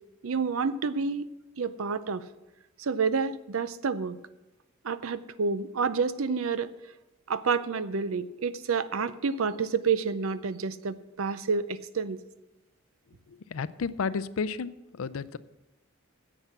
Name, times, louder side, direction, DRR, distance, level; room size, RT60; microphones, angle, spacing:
voice 1, 0.2-1.3 1.6-2.3 2.8-4.2 4.8-6.7 7.3-12.2, right 5 dB, 85° right, 15 dB, 0.6 m, -29 dB
voice 2, 13.3-14.7 15.0-15.4, left 5 dB, 85° left, 16 dB, 0.5 m, -32 dB
10.0 x 8.0 x 5.9 m, 0.99 s
head